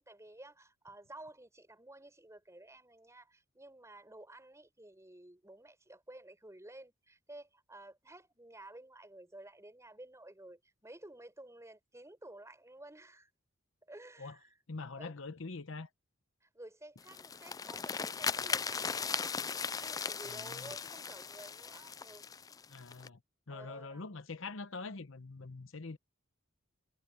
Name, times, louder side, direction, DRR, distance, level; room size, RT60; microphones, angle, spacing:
voice 1, 0.0-13.3 13.8-14.6 15.0-15.1 16.4-19.2 19.8-22.2 23.5-24.1, right 1 dB, 15° right, 5.2 m, -53 dB
voice 2, 14.7-15.9 20.3-20.7 22.7-23.2 23.5-26.0, left 3 dB, 70° left, 1.0 m, -44 dB
sound 1, 17.0-23.1, left 6 dB, 15° left, 0.3 m, -38 dB
head